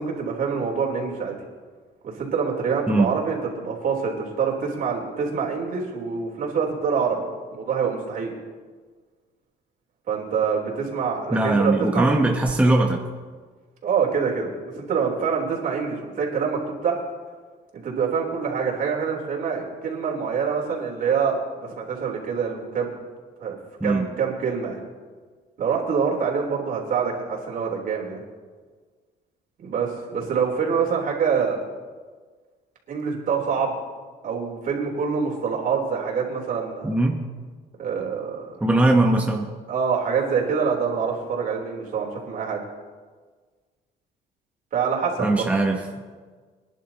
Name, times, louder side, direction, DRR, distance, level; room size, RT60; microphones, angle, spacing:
voice 1, 0.0-1.4 2.0-7.2 7.5-8.3 10.1-12.3 13.8-17.0 17.7-22.9 23.4-23.6 23.8-24.8 25.6-28.2 29.6-31.6 32.9-33.7 34.2-36.9 37.8-38.6 39.7-42.6 44.7-45.5, right 6 dB, 55° right, -2 dB, 3.6 m, -25 dB
voice 2, 11.3-13.0 23.8-24.1 36.8-37.2 38.6-39.5 45.2-45.8, right 2 dB, 10° right, 1 dB, 1.1 m, -20 dB
25.0 x 11.0 x 2.9 m, 1.5 s
cardioid pair, 110°, 17 cm